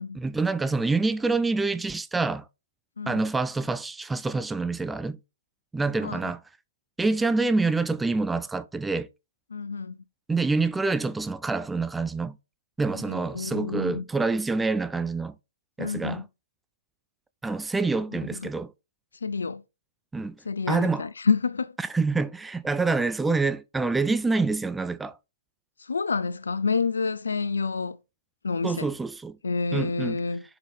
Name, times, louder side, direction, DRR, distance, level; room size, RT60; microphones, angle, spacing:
voice 1, 0.2-2.5 3.1-5.2 5.7-6.4 7.0-9.1 10.3-12.4 12.8-15.3 15.8-16.2 17.4-18.7 20.1-20.4 20.7-21.0 21.9-25.2 28.6-29.4 29.7-30.2, right 3 dB, 5° right, 0.3 m, -26 dB
voice 2, 6.0-6.3 9.5-10.0 12.9-14.0 15.8-16.3 18.3-18.5 19.2-19.6 20.5-21.8 25.8-28.0 28.4-28.9 29.4-30.4, left 4 dB, 80° left, 0.5 m, -28 dB
5.8 x 5.0 x 5.1 m
hypercardioid pair, 130°, 0 cm